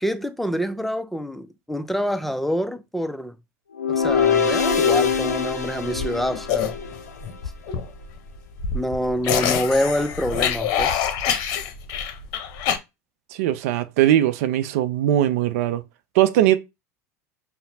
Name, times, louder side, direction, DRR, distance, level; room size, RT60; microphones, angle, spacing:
voice 1, 0.0-3.4 3.9-6.7 8.7-11.1, equal, ahead, 0.5 m, -26 dB
sound 1, 3.7-7.0, left 7 dB, 90° left, 0.5 m, -23 dB
sound 2, 4.1-12.8, left 8 dB, 55° left, 0.7 m, -26 dB
voice 2, 13.3-15.8 16.2-16.6, right 12 dB, 65° right, 0.5 m, -20 dB
5.6 x 2.1 x 2.7 m
hypercardioid pair, 80°, 8 cm